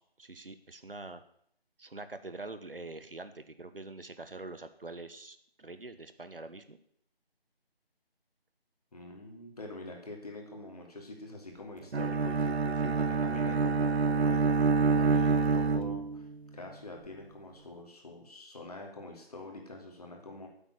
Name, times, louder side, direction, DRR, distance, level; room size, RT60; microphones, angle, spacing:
voice 1, 0.2-1.2 1.8-6.8 12.8-13.0, right 2 dB, 60° right, 11 dB, 1.3 m, -44 dB
voice 2, 8.9-12.5 13.1-16.3 16.5-20.5, left 2 dB, 40° left, 1 dB, 3.0 m, -45 dB
Bowed string instrument, 11.9-16.3, right 4 dB, 85° right, 0.6 m, -27 dB
9.5 x 8.4 x 9.1 m, 0.69 s
figure-of-eight pair, 160°, 31 cm